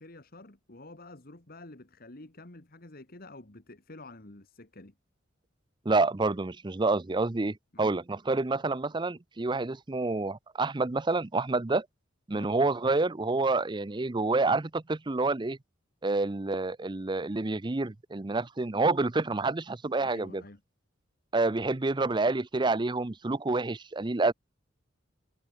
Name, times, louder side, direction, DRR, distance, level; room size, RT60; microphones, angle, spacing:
voice 1, 0.0-4.9 7.7-8.0 12.3-12.5 20.0-20.6, left 2 dB, 50° left, 1.9 m, -49 dB
voice 2, 5.9-11.9 12.3-15.6 16.0-20.4 21.3-24.3, right 3 dB, 25° right, 0.6 m, -28 dB
head